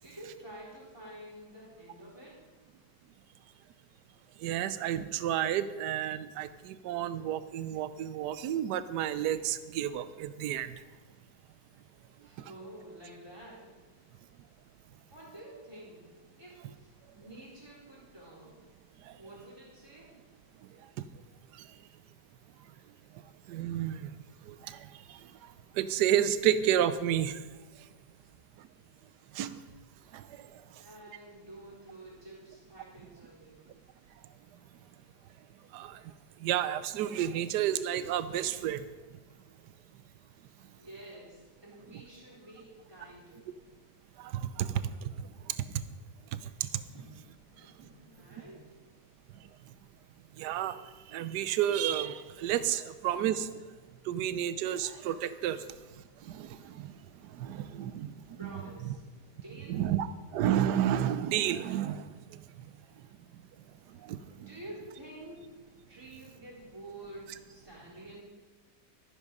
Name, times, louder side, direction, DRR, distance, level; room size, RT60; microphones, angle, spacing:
voice 1, 0.0-2.5 12.2-13.8 15.1-18.6 19.1-20.2 30.8-33.7 40.8-43.6 46.9-48.6 55.6-55.8 58.4-59.0 59.3-59.9 64.3-65.6 65.9-68.2, right 1 dB, 15° right, -5 dB, 3.7 m, -49 dB
voice 2, 4.4-10.7 23.5-24.1 24.5-25.2 25.7-27.4 29.3-29.6 30.1-30.3 35.7-36.0 36.4-38.8 44.2-45.1 46.3-46.7 50.4-50.8 51.1-53.5 54.1-55.6 56.2-56.9 57.3-58.1 58.4-58.5 59.7-60.1 60.3-62.1 64.0-64.5, right 10 dB, 80° right, 13 dB, 1.2 m, -31 dB
13.5 x 10.0 x 5.3 m, 1.3 s
omnidirectional pair, 1.8 m